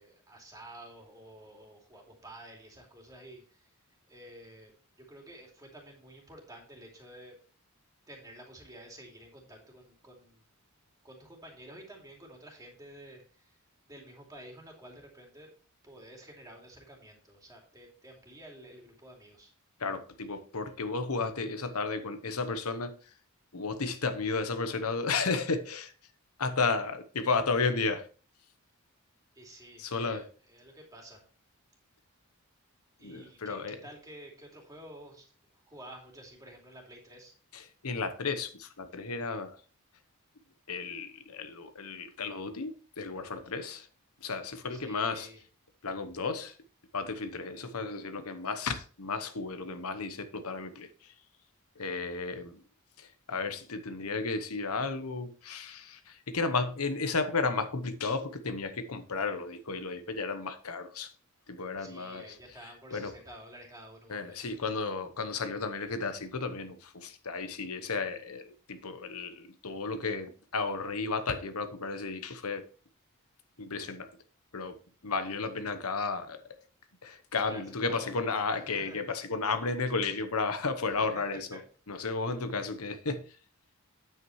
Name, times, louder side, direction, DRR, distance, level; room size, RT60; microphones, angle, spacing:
voice 1, 0.0-3.7 4.1-4.7 5.1-7.4 8.1-10.5 11.0-13.6 13.9-15.5 15.8-19.5 29.3-31.2 33.0-35.3 35.7-37.3 44.7-45.4 51.8-52.0 61.8-64.5 77.5-78.1 78.5-79.0 81.0-81.1 81.5-81.6, right 1 dB, 15° right, 2.6 m, -51 dB
voice 2, 19.8-22.9 23.5-25.9 26.4-28.1 29.8-30.2 33.0-33.8 37.5-39.6 40.7-43.9 44.2-45.3 45.8-46.5 46.9-51.1 51.8-52.6 53.0-61.1 61.5-62.2 62.9-63.1 64.1-72.6 73.6-74.1 74.5-74.8 75.0-76.4 77.0-81.6 81.9-83.2, left 4 dB, 75° left, 1.0 m, -33 dB
9.3 x 8.3 x 3.2 m
head